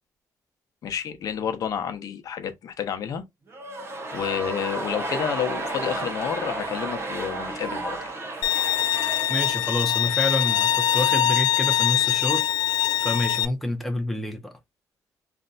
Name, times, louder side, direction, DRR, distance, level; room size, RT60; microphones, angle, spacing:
voice 1, 0.8-3.2 4.1-8.1, left 8 dB, 60° left, 0.7 m, -30 dB
sound 1, 3.5-11.6 11.8-11.9, right 2 dB, 35° right, 0.8 m, -33 dB
Bowed string instrument, 8.4-13.5, left 11 dB, 85° left, 0.4 m, -23 dB
voice 2, 9.3-12.5 13.0-14.5, left 1 dB, ahead, 0.5 m, -28 dB
2.6 x 2.1 x 3.9 m
cardioid pair, 145°, 7 cm